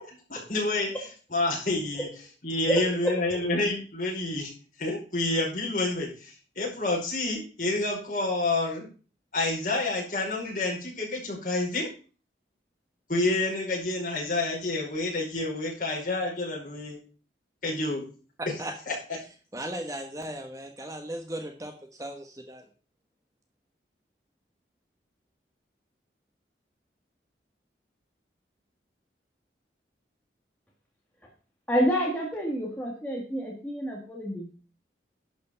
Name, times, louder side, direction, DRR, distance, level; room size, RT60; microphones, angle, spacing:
voice 1, 0.3-0.9 1.3-2.1 2.4-4.5 4.8-8.9 9.3-11.9 13.1-17.0 17.6-18.0 18.9-19.0, left 2 dB, 45° left, -3 dB, 5.1 m, -28 dB
voice 2, 2.7-3.1 31.7-34.4, equal, 10° left, -2 dB, 1.9 m, -28 dB
voice 3, 18.4-18.7 19.5-22.7, right 1 dB, 20° right, 3 dB, 1.2 m, -37 dB
11.5 x 5.2 x 6.7 m, 0.37 s
head